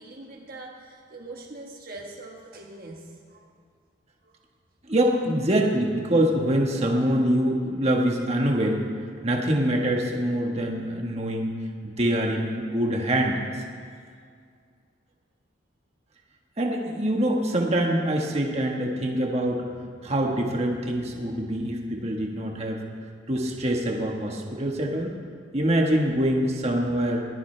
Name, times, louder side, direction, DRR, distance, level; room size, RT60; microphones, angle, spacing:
voice 1, 0.0-3.5 4.2-4.3, right 2 dB, 50° right, 0 dB, 1.4 m, -42 dB
voice 2, 4.9-8.8 9.2-11.5 11.8-13.4 16.6-19.7 20.0-22.8 23.3-25.1 25.5-27.2, right 1 dB, 35° right, 0 dB, 1.5 m, -24 dB
21.0 x 15.5 x 3.4 m, 2.1 s
head